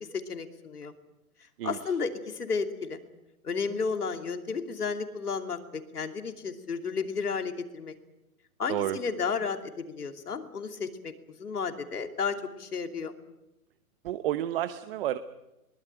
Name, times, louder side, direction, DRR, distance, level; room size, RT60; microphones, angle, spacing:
voice 1, 0.1-0.9 1.6-3.0 3.4-8.0 8.6-13.1, left 5 dB, 90° left, 6 dB, 2.9 m, -33 dB
voice 2, 14.0-15.2, right 13 dB, 40° right, 12 dB, 1.0 m, -30 dB
23.0 x 19.5 x 9.0 m, 0.92 s
hypercardioid pair, 140°, 45 cm